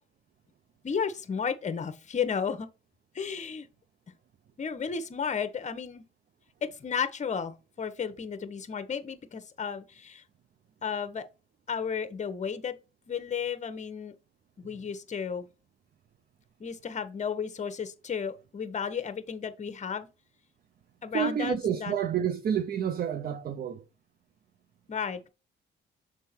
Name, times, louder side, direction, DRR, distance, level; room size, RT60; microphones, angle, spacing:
voice 1, 0.8-2.7 3.1-3.7 4.6-6.0 6.6-10.2 10.8-11.2 11.7-12.8 13.1-14.2 14.6-15.5 16.6-20.1 21.0-21.9 24.9-25.3, left 6 dB, 35° left, 1.0 m, -33 dB
voice 2, 21.1-23.8, right 8 dB, 50° right, 0.6 m, -29 dB
6.7 x 3.6 x 4.3 m
cardioid pair, 90°, 20 cm